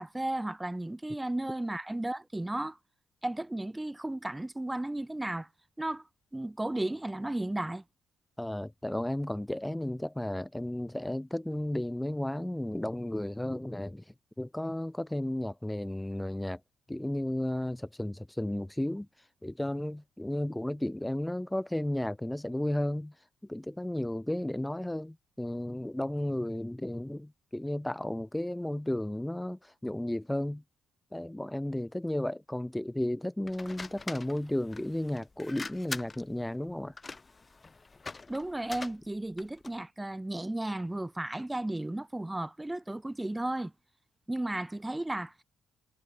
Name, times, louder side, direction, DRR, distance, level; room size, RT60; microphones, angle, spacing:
voice 1, 0.0-2.8 3.2-5.5 5.8-6.0 6.3-7.8 38.3-43.7 44.3-45.4, right 1 dB, 10° right, 1.6 m, -34 dB
voice 2, 8.4-14.0 14.4-16.6 16.9-19.1 19.4-23.1 23.5-30.6 31.1-36.9, left 1 dB, 5° left, 3.9 m, -33 dB
sound 1, 33.5-39.8, left 3 dB, 25° left, 4.3 m, -44 dB
cardioid pair, 90°, 0 cm